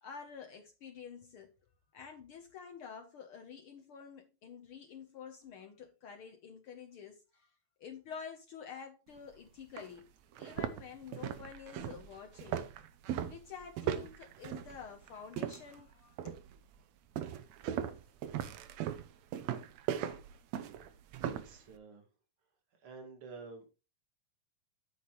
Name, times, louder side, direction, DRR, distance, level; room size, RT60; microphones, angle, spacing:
voice 1, 0.0-1.5 1.8-10.1 10.4-12.7 13.2-16.4, left 7 dB, 85° left, 1.2 m, -49 dB
sound 1, 9.2-9.3 9.8-9.9 10.3-15.8 16.2-16.6 17.2-21.5, right 10 dB, 70° right, 1.7 m, -38 dB
voice 2, 21.2-22.1 22.7-23.7, right 4 dB, 45° right, 2.7 m, -51 dB
10.5 x 8.7 x 3.1 m
omnidirectional pair, 3.9 m